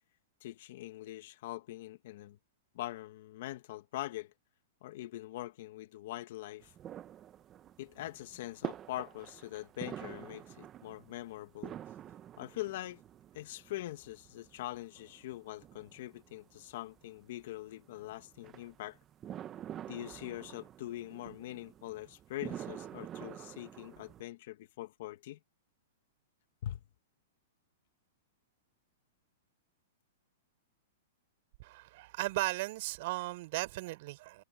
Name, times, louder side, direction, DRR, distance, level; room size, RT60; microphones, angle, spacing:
voice 1, 0.4-2.4 2.7-4.3 4.8-6.7 7.8-11.7 12.4-13.0 13.3-19.0 19.9-25.4 26.6-26.8, left 15 dB, 50° left, 1.8 m, -43 dB
sound 1, 6.6-24.2, right 11 dB, 20° right, 1.0 m, -48 dB
voice 2, 31.6-34.4, right 20 dB, 45° right, 5.3 m, -36 dB
hypercardioid pair, 165°, 0 cm